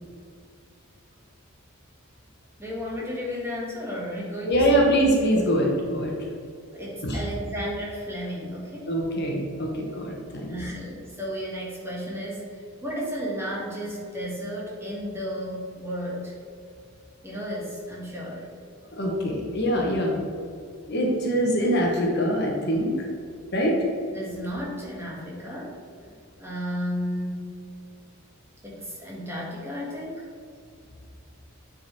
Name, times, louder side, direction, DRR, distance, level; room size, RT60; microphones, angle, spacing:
voice 1, 2.6-4.8 6.7-8.9 10.4-16.3 17.2-18.5 24.1-25.8 26.4-27.5 28.6-30.3, equal, 10° right, -5 dB, 1.4 m, -33 dB
voice 2, 4.5-6.2 7.0-7.2 8.9-10.5 18.9-20.2 20.9-22.9 23.5-23.7, equal, 50° left, 0 dB, 1.2 m, -23 dB
9.0 x 4.0 x 4.3 m, 2.3 s
head